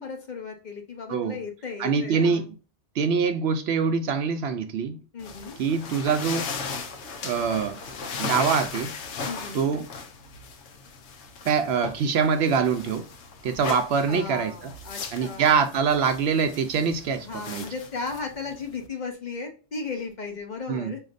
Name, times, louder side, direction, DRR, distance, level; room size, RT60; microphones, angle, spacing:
voice 1, 0.0-2.5 5.1-5.6 9.2-9.7 13.6-13.8 14.0-15.6 17.2-21.0, left 4 dB, 45° left, 0.9 m, -36 dB
voice 2, 1.8-2.5 3.0-5.0 5.6-6.5 7.2-7.8 8.2-8.9 9.5-9.9 11.5-13.1 13.4-14.7 15.1-17.6 20.7-20.9, right 6 dB, 70° right, 0.8 m, -24 dB
sound 1, 5.2-18.9, left 4 dB, 80° left, 1.0 m, -37 dB
5.1 x 2.8 x 2.4 m
omnidirectional pair, 1.2 m